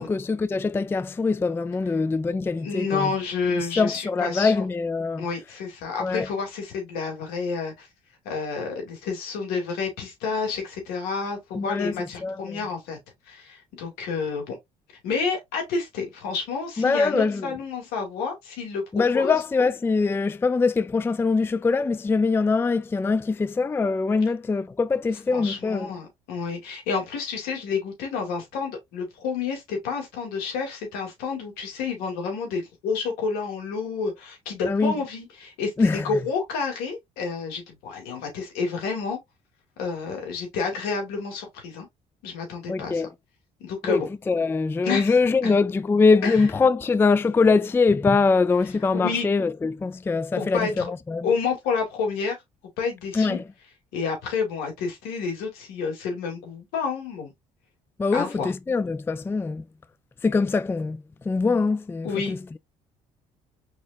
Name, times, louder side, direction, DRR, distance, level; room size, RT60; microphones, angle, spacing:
voice 1, 0.0-3.1 3.6-5.3 6.0-6.3 11.6-12.6 16.8-17.5 18.9-26.0 34.6-34.9 35.8-36.1 42.7-43.1 43.8-44.0 44.3-51.3 53.1-53.5 58.0-59.6 60.2-62.4, left 4 dB, 15° left, 0.3 m, -23 dB
voice 2, 2.6-4.6 5.2-7.9 8.2-13.0 13.3-14.6 15.0-19.4 25.3-39.2 39.8-41.9 42.2-43.0 43.6-44.1 44.8-45.1 45.4-45.6 46.2-46.4 48.9-49.3 50.4-50.9 51.2-52.3 52.8-53.4 53.9-57.3 58.1-58.5 62.0-62.3, left 5 dB, 80° left, 2.5 m, -29 dB
4.8 x 4.1 x 2.5 m
supercardioid pair, 75°, 15 cm